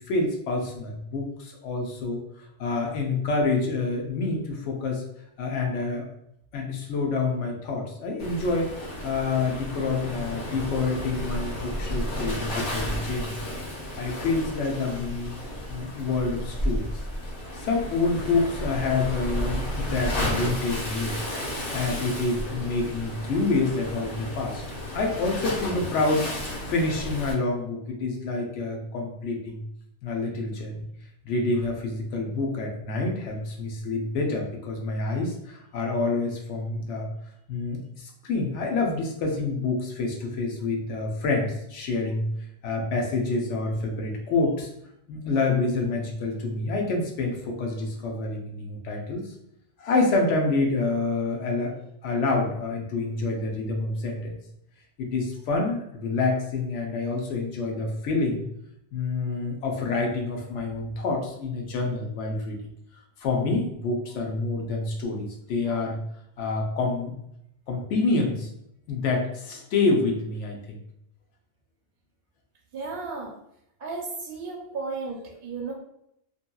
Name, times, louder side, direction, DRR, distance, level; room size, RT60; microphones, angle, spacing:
voice 1, 0.0-5.0 5.4-6.1 6.5-8.7 9.0-13.5 14.0-15.4 15.7-16.9 17.5-21.1 21.7-24.6 24.9-26.3 26.7-29.6 30.0-30.9 31.2-37.1 37.5-42.3 42.6-44.7 45.1-49.3 49.8-54.4 55.0-58.5 58.9-62.6 63.2-66.0 66.4-67.1 67.7-68.5 68.9-70.8, left 3 dB, 85° left, 1 dB, 1.0 m, -27 dB
Waves surf, 8.2-27.3, left 1 dB, 55° left, 1.2 m, -33 dB
voice 2, 72.7-73.3 73.8-75.7, right 4 dB, 60° right, -2 dB, 0.7 m, -34 dB
2.7 x 2.6 x 2.2 m, 0.75 s
omnidirectional pair, 1.2 m